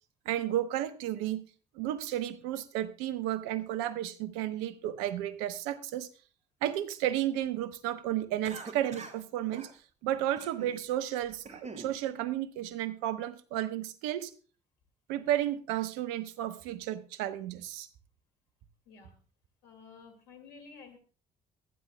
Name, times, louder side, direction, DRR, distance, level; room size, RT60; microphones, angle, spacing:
voice 1, 0.2-1.5 1.7-6.1 6.6-9.7 10.0-14.3 15.1-17.9, right 12 dB, 75° right, 13 dB, 1.0 m, -33 dB
Cough, 8.4-9.2 9.5-9.7 10.4-10.8 11.2-11.9, right 4 dB, 35° right, 2.0 m, -44 dB
voice 2, 19.6-21.0, left 5 dB, 80° left, 5 dB, 2.4 m, -52 dB
22.5 x 9.8 x 2.3 m, 0.36 s
hypercardioid pair, 55°, 21 cm